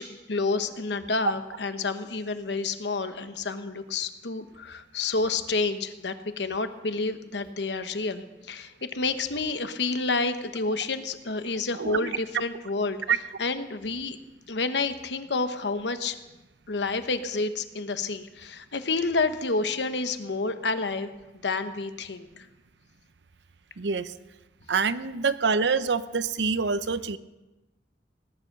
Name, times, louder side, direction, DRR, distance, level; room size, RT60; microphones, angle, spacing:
voice 1, 0.0-13.0 13.4-14.2 14.5-16.2 16.7-21.1 21.4-22.5, left 3 dB, 80° left, 9 dB, 1.1 m, -29 dB
voice 2, 11.7-12.1 13.1-13.2 23.8-24.1 24.7-27.2, right 5 dB, 85° right, 14 dB, 0.7 m, -26 dB
18.5 x 10.0 x 6.6 m, 1.1 s
head